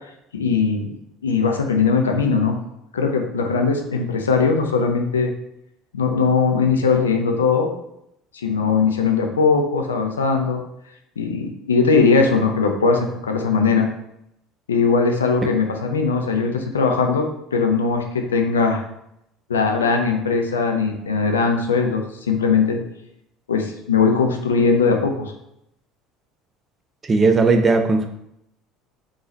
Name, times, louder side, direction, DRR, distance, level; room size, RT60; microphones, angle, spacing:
voice 1, 0.3-0.9 1.2-2.6 2.9-5.3 5.9-7.7 8.3-10.6 11.2-13.9 14.7-18.8 19.5-22.8 23.5-25.3, left 5 dB, 85° left, 4 dB, 0.5 m, -20 dB
voice 2, 27.0-28.1, right 3 dB, 30° right, 5 dB, 0.7 m, -17 dB
3.9 x 3.0 x 3.9 m, 0.79 s
hypercardioid pair, 65°, 0 cm